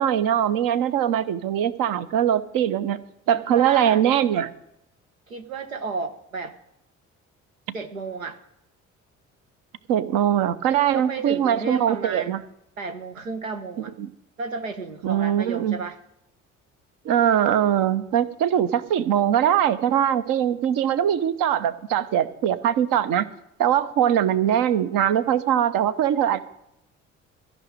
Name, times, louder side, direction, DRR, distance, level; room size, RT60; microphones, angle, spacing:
voice 1, 0.0-3.0 3.3-4.5 9.9-12.4 14.0-14.1 15.0-15.8 17.0-23.3 23.6-26.4, right 10 dB, 55° right, 14 dB, 0.9 m, -21 dB
voice 2, 3.3-4.0 5.3-6.5 7.7-8.4 10.9-12.4 12.8-13.9 14.4-16.0, right 4 dB, 90° right, 7 dB, 0.7 m, -33 dB
14.5 x 6.3 x 9.1 m, 0.81 s
figure-of-eight pair, 45°, 39 cm